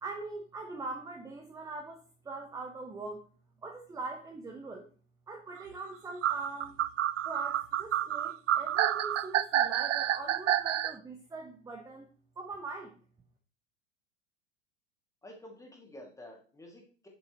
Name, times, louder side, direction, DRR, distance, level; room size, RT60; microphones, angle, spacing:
voice 1, 0.0-3.3 3.6-4.9 5.3-6.8 7.2-12.1 12.4-12.9, right 3 dB, 10° right, 2 dB, 1.0 m, -42 dB
sound 1, 6.2-10.9, right 11 dB, 75° right, 0.5 m, -29 dB
voice 2, 15.2-17.1, left 1 dB, 10° left, 1 dB, 2.2 m, -50 dB
8.5 x 7.0 x 3.0 m, 0.40 s
figure-of-eight pair, 85°, 38 cm